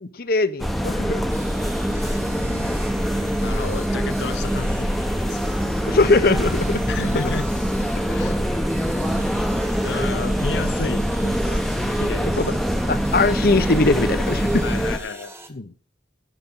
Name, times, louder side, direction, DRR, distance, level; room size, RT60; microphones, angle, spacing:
voice 1, 0.0-1.2 2.4-2.8 5.9-6.8 7.1-7.2 11.8-12.0 12.4-12.5 12.9-14.7 15.5-15.7, left 3 dB, 60° left, 0.8 m, -21 dB
sound 1, 0.6-15.0, equal, ahead, 0.9 m, -24 dB
sound 2, 1.3-15.5, right 2 dB, 15° right, 1.3 m, -42 dB
voice 2, 3.4-4.9 5.2-5.5 6.9-7.5 8.1-8.4 9.8-11.7 11.9-12.4 14.6-15.3, left 4 dB, 90° left, 0.6 m, -31 dB
11.5 x 5.1 x 8.1 m
head